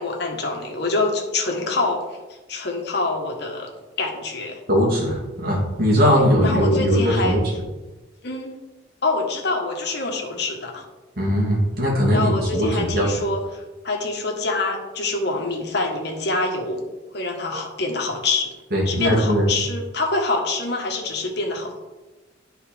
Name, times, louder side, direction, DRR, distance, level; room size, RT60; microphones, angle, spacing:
voice 1, 0.0-2.2 2.5-3.7 4.0-4.6 6.4-7.4 8.2-8.5 9.0-10.8 12.1-16.8 17.1-18.6 18.8-21.8, left 3 dB, 55° left, 1 dB, 1.5 m, -25 dB
voice 2, 4.7-7.5 11.2-13.1 17.5-17.6 18.7-19.5, equal, 50° right, -3 dB, 2.4 m, -20 dB
10.5 x 4.3 x 5.2 m, 1.1 s
head